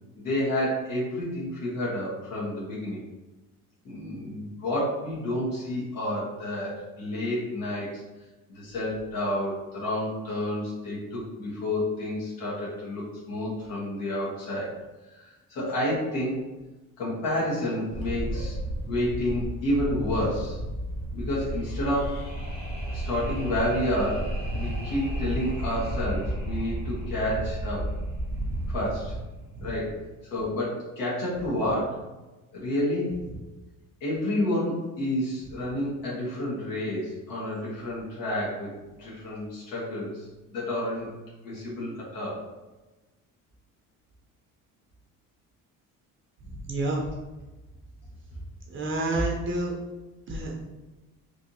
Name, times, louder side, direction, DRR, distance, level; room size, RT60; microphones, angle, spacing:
voice 1, 0.2-3.0 3.8-8.0 8.5-14.7 15.1-16.4 17.0-20.6 21.1-22.2 22.9-27.9 28.7-29.1 29.6-30.0 30.3-32.0 32.5-33.3 34.0-41.1 41.4-42.4, left 1 dB, 85° left, -7 dB, 1.3 m, -30 dB
Wind, 17.9-29.2, right 1 dB, 15° left, 0.8 m, -32 dB
sound 1, 21.4-28.5, equal, 55° left, 0.8 m, -46 dB
voice 2, 46.6-47.0 48.7-49.7 50.3-50.7, right 2 dB, 40° right, -1 dB, 0.5 m, -29 dB
3.3 x 2.5 x 2.7 m, 1.1 s
cardioid pair, 145°, 33 cm